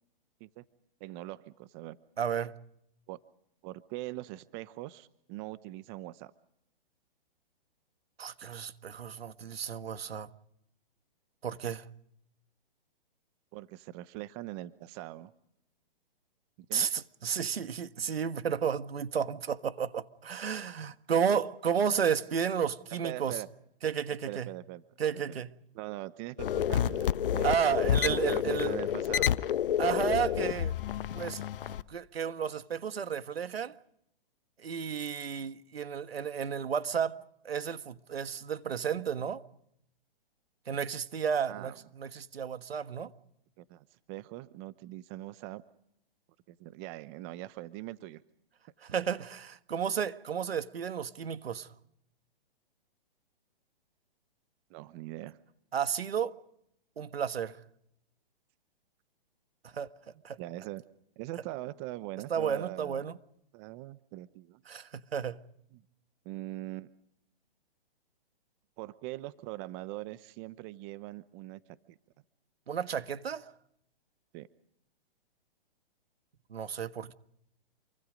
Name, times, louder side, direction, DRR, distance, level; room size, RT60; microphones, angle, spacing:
voice 1, 1.0-2.0 3.1-3.2 3.6-6.3 13.5-15.3 16.7-16.9 20.4-20.7 23.0-23.5 24.2-24.8 25.1-25.4 25.7-27.5 27.8-29.4 41.5-41.8 43.6-45.6 46.5-48.2 54.7-55.4 60.4-60.8 61.2-63.1 63.5-64.6 65.7-65.8 66.2-66.9 68.8-71.6 71.9-72.0 74.3-74.5, right 17 dB, 25° right, 0.9 m, -42 dB
voice 2, 2.2-2.5 8.2-10.3 11.4-11.9 16.7-23.4 23.8-24.5 25.0-25.5 27.4-28.7 29.8-30.7 31.1-31.4 31.7-33.7 34.6-37.2 37.4-39.4 40.7-43.1 48.8-51.7 55.7-56.4 57.0-57.6 59.6-59.9 60.2-60.4 62.3-63.1 64.7-65.4 72.7-73.4 76.5-77.1, right 7 dB, 85° right, 1.6 m, -32 dB
sound 1, 26.4-31.8, left 10 dB, 65° left, 1.1 m, -29 dB
27.5 x 24.5 x 5.2 m
hypercardioid pair, 145°, 29 cm